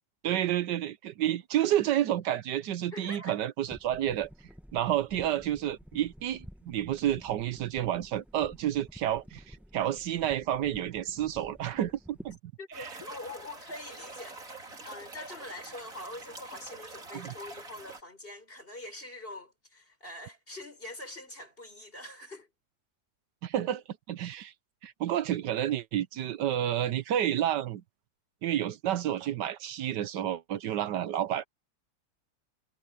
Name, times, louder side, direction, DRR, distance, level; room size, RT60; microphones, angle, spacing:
voice 1, 0.2-4.3 4.7-12.4 12.8-13.0 17.1-17.3 23.4-24.5 24.8-27.8 28.4-31.4, right 11 dB, 75° right, 1.4 m, -30 dB
voice 2, 2.9-3.4 12.6-22.5, left 1 dB, 30° left, 6.5 m, -44 dB
sound 1, 3.6-12.4, equal, ahead, 1.3 m, -51 dB
sound 2, 12.7-18.0, right 2 dB, 50° right, 4.0 m, -46 dB
omnidirectional pair, 1.9 m